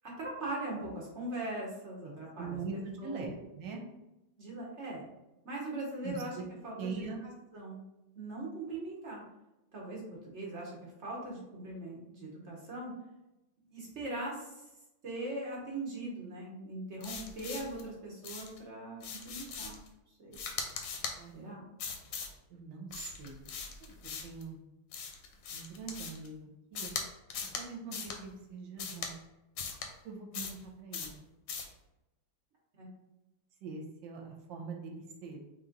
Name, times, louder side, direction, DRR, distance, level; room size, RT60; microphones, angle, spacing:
voice 1, 0.0-2.6 3.0-3.4 4.4-5.1 5.4-6.4 6.6-7.8 8.1-9.2 9.7-12.9 13.7-14.6 15.0-19.8 20.2-20.4 21.3-21.6 32.8-32.9, right 2 dB, 50° right, -3 dB, 0.9 m, -40 dB
voice 2, 2.1-3.9 6.0-6.4 6.8-7.2 21.1-21.5 22.5-23.4 23.8-23.9 24.2-24.6 25.5-27.0 27.6-29.1 30.0-31.1 33.6-35.5, right 4 dB, 65° right, 1 dB, 1.3 m, -43 dB
sound 1, 17.0-17.8 18.2-18.6 19.0-19.9 20.3-21.2 21.8-22.4 22.9-24.4 24.9-26.3 26.8-27.0 27.3-27.6 27.9-28.2 28.8-29.1 29.6-29.9 30.3-30.6 30.9-31.2 31.5-31.7, left 5 dB, 70° left, 1.3 m, -40 dB
4.3 x 3.0 x 3.7 m, 0.95 s
omnidirectional pair, 2.4 m